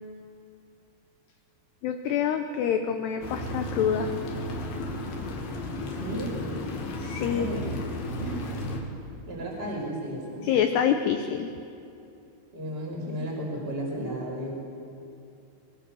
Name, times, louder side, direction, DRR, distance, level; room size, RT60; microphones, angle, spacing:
voice 1, 1.8-4.1 7.0-7.5 10.4-11.5, left 8 dB, 75° left, 6 dB, 2.5 m, -26 dB
sound 1, 3.2-8.8, left 1 dB, 55° left, 4.0 m, -33 dB
voice 2, 5.9-6.3 7.3-7.7 8.2-8.4 9.3-10.5 12.5-14.5, equal, 10° right, -2 dB, 4.9 m, -34 dB
25.0 x 23.0 x 7.0 m, 2.7 s
omnidirectional pair, 5.9 m